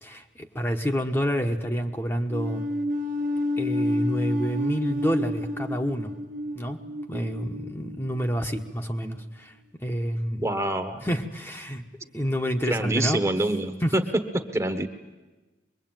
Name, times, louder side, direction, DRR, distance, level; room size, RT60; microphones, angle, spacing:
voice 1, 0.0-2.7 3.6-6.1 6.5-6.8 7.1-9.5 9.8-10.5 11.0-13.2 13.8-13.9, equal, 15° left, 3 dB, 1.2 m, -28 dB
sound 1, 2.3-8.7, left 1 dB, 50° right, 1.0 m, -30 dB
voice 2, 10.4-11.0 12.7-14.0 14.5-14.9, right 1 dB, 15° right, 8 dB, 1.2 m, -26 dB
24.0 x 22.0 x 9.1 m, 1.2 s
head